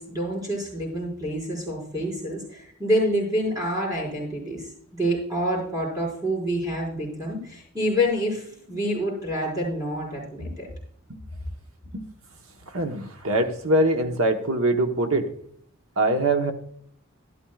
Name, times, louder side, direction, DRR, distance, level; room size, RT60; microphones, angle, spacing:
voice 1, 0.0-10.7, equal, 20° right, -4 dB, 5.0 m, -27 dB
voice 2, 12.7-15.3 16.0-16.5, right 1 dB, 90° right, 5 dB, 1.1 m, -23 dB
12.0 x 11.5 x 2.4 m, 0.62 s
head